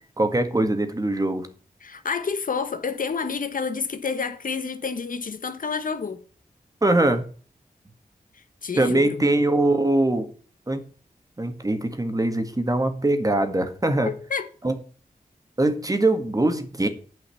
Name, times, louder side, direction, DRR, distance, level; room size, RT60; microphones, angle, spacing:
voice 1, 0.2-1.5 6.8-7.2 8.8-10.3 10.7-10.8 11.4-14.1 14.6-14.7 15.6-16.9, right 2 dB, 25° right, 1.9 m, -22 dB
voice 2, 1.8-6.2 8.3-9.3 14.0-14.5, left 5 dB, 65° left, 1.2 m, -29 dB
8.9 x 5.7 x 7.1 m
cardioid pair, 60°, 15 cm